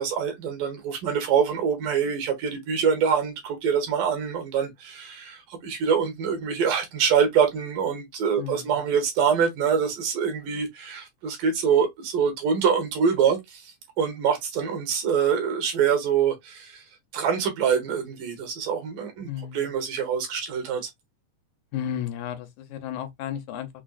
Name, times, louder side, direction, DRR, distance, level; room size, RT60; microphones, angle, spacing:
voice 1, 0.0-16.8 17.1-20.9, right 7 dB, 75° right, 3.0 m, -25 dB
voice 2, 8.4-8.7 19.3-19.7 21.7-23.7, left 10 dB, 75° left, 2.0 m, -33 dB
6.1 x 2.2 x 2.4 m
omnidirectional pair, 3.8 m